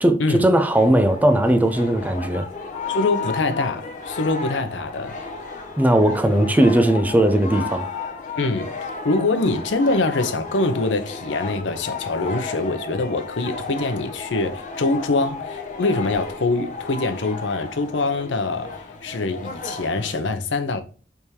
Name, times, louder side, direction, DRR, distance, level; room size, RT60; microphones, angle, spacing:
voice 1, 0.0-2.5 5.8-7.9, right 1 dB, 10° right, 0.5 m, -18 dB
sound 1, 0.7-20.2, left 4 dB, 45° left, 0.8 m, -33 dB
voice 2, 2.9-5.2 8.4-8.7 9.0-20.8, left 3 dB, 85° left, 0.7 m, -24 dB
4.8 x 3.5 x 2.8 m
head